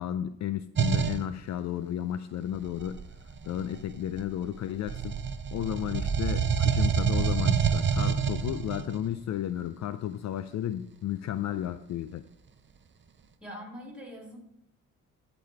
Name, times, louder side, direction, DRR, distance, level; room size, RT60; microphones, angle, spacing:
voice 1, 0.0-3.0 3.4-5.2 5.5-12.2, left 11 dB, 60° left, 12 dB, 0.5 m, -33 dB
sound 1, 0.8-1.2 2.5-4.4 4.9-9.0, right 7 dB, 35° right, 0.7 m, -27 dB
voice 2, 13.4-14.4, equal, 5° right, 0 dB, 3.2 m, -43 dB
11.5 x 4.2 x 4.5 m, 0.78 s
cardioid pair, 85°, 32 cm